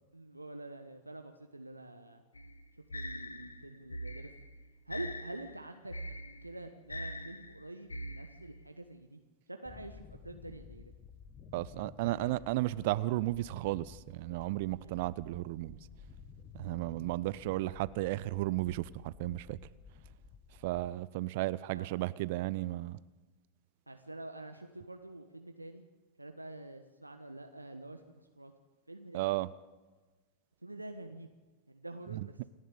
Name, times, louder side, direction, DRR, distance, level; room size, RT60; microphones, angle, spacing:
voice 1, 0.1-2.2 2.9-4.3 4.9-5.9 6.4-9.2 9.5-10.8 12.0-12.4 14.8-15.0 21.7-21.9 23.9-25.9 26.2-28.5 28.9-29.3 30.6-31.3 31.7-32.4, right 2 dB, 85° right, 1.2 m, -46 dB
sound 1, 2.3-8.7, equal, 80° left, 1.4 m, -43 dB
sound 2, 9.7-20.9, left 6 dB, 30° left, 1.6 m, -54 dB
voice 2, 11.5-15.8 16.5-19.6 20.6-23.0 29.1-29.5 32.1-32.3, right 17 dB, 50° right, 0.6 m, -34 dB
28.0 x 11.0 x 8.5 m
figure-of-eight pair, 90°, 0 cm